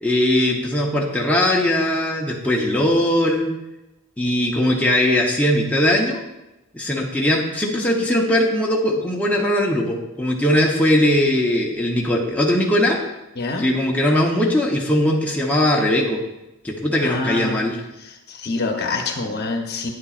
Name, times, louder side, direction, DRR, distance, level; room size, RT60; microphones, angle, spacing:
voice 1, 0.0-3.5 4.2-6.2 6.7-13.0 13.6-16.2 16.6-17.8, left 1 dB, 5° left, -2 dB, 0.8 m, -20 dB
voice 2, 13.4-13.7 17.0-17.6 18.0-19.9, left 3 dB, 50° left, 3 dB, 0.9 m, -26 dB
9.4 x 8.6 x 2.5 m, 0.97 s
head